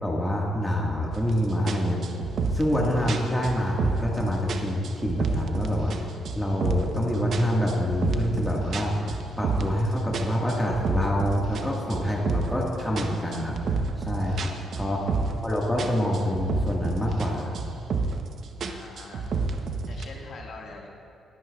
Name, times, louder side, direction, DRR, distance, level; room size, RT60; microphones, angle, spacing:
voice 1, 0.0-2.0 2.5-6.0 6.4-13.6 14.0-15.0 15.4-17.5, equal, 10° left, -4 dB, 1.7 m, -26 dB
sound 1, 1.1-1.3 1.7-4.2 4.5-6.0 6.2-7.0 7.3-9.8 10.1-12.6 13.0-15.5 15.8-17.3 17.5-18.3 18.6-20.0, right 4 dB, 60° right, 0.8 m, -29 dB
voice 2, 14.8-15.4 18.6-19.3 19.9-20.9, left 3 dB, 60° left, -1 dB, 1.8 m, -44 dB
21.5 x 9.2 x 2.4 m, 2.5 s
cardioid pair, 90°, 0 cm